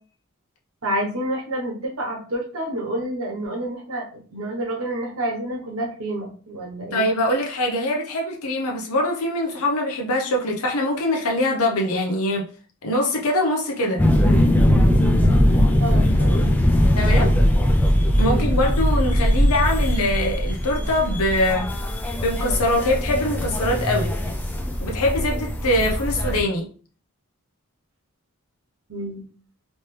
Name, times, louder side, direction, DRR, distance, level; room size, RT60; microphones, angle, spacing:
voice 1, 0.8-7.0 15.8-16.4 16.9-17.4 18.3-18.5 28.9-29.2, right 1 dB, 70° right, 1.1 m, -29 dB
voice 2, 6.9-12.4 12.8-14.0 17.0-17.3 18.2-21.7 22.2-24.1 24.8-26.7, left 1 dB, 80° left, 0.7 m, -23 dB
sound 1, 14.0-26.4, equal, 10° left, 0.3 m, -20 dB
3.2 x 3.0 x 3.2 m
head